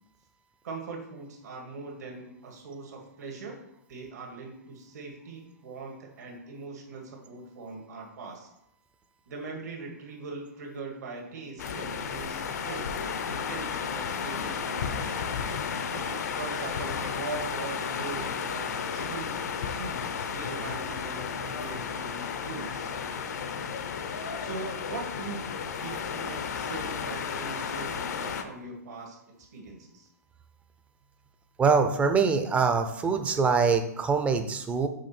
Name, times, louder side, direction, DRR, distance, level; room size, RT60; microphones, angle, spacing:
voice 1, 0.6-3.6 3.9-8.5 9.3-15.1 15.9-22.9 24.4-25.5 25.8-30.1, right 4 dB, 70° right, 1 dB, 1.9 m, -41 dB
sound 1, 11.6-28.4, left 6 dB, 70° left, 0.8 m, -33 dB
voice 2, 31.6-34.9, right 5 dB, 15° right, 8 dB, 0.6 m, -24 dB
6.4 x 5.1 x 4.3 m, 0.77 s
hypercardioid pair, 135°, 9 cm